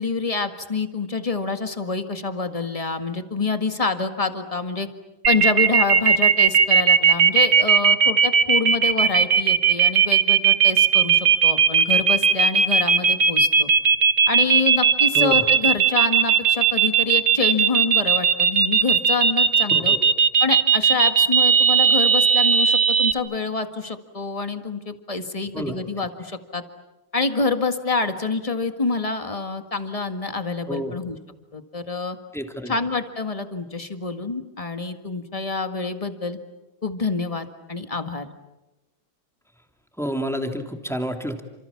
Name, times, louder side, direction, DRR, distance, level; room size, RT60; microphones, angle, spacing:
voice 1, 0.0-4.9 5.3-13.7 14.3-19.9 20.4-26.6 27.1-31.2 31.5-32.2 32.6-36.4 36.8-38.3, left 4 dB, 20° left, 8 dB, 1.7 m, -27 dB
sound 1, 5.2-23.1, right 7 dB, 50° right, 1.6 m, -17 dB
voice 2, 19.7-20.1 25.5-25.8 30.7-30.9 32.3-32.7 40.0-41.4, equal, ahead, 4 dB, 2.7 m, -29 dB
29.5 x 27.0 x 7.3 m, 1.0 s
omnidirectional pair, 2.2 m